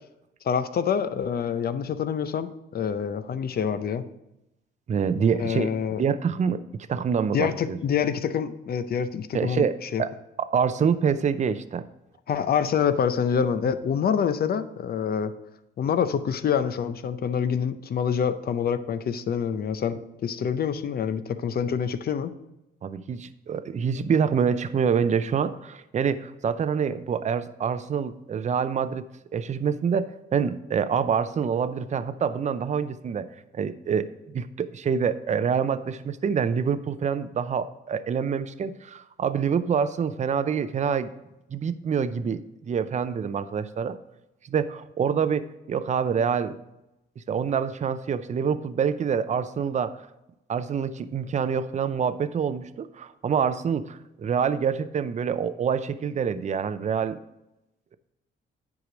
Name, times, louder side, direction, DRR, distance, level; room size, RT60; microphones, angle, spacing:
voice 1, 0.4-4.1 5.4-6.0 7.3-10.0 12.3-15.3 15.8-22.3, left 7 dB, 50° left, 11 dB, 0.6 m, -26 dB
voice 2, 4.9-5.7 6.0-6.6 6.9-7.8 9.3-10.1 10.4-11.8 22.8-29.1 29.3-33.3 33.5-41.1 41.5-44.0 44.4-46.6 47.2-50.0 50.5-57.2, right 7 dB, 35° right, 13 dB, 0.5 m, -26 dB
9.4 x 4.8 x 5.0 m, 0.91 s
cardioid pair, 90°, 20 cm